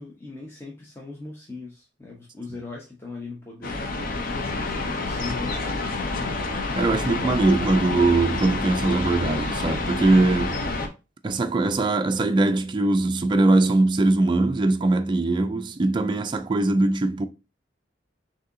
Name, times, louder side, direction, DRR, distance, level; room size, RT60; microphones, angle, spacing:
voice 1, 0.0-5.9, left 3 dB, 15° left, 0.7 m, -39 dB
sound 1, 3.6-10.9, left 3 dB, 50° left, 0.6 m, -28 dB
voice 2, 6.7-10.6 11.2-17.3, right 2 dB, 25° right, 0.3 m, -21 dB
6.2 x 2.7 x 2.6 m
head